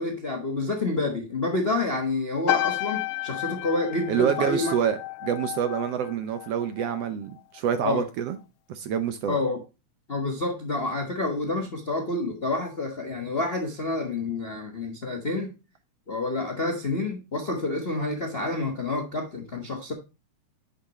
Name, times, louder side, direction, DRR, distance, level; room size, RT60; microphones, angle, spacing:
voice 1, 0.0-4.7 7.8-8.1 9.3-9.6 10.1-15.5 16.1-19.9, left 2 dB, 45° left, 0.7 m, -28 dB
sound 1, 2.5-7.1 7.4-7.8, left 18 dB, 80° left, 1.9 m, -32 dB
voice 2, 4.1-8.4 8.7-9.4, right 9 dB, 70° right, 1.6 m, -27 dB
9.7 x 6.1 x 3.0 m
omnidirectional pair, 3.3 m